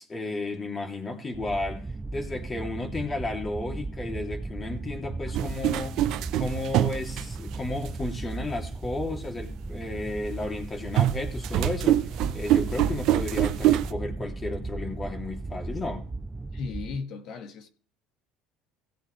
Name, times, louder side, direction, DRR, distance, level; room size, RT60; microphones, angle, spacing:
voice 1, 0.0-1.8 2.1-6.0 6.3-16.1, left 2 dB, 25° left, 3.0 m, -33 dB
sound 1, 1.3-17.0, right 3 dB, 15° right, 0.4 m, -36 dB
sound 2, 5.3-7.9 8.6-8.7 11.0-13.9, right 12 dB, 65° right, 0.9 m, -24 dB
voice 2, 16.5-17.7, left 5 dB, 65° left, 1.8 m, -36 dB
16.5 x 8.0 x 3.4 m
supercardioid pair, 100°, 0 cm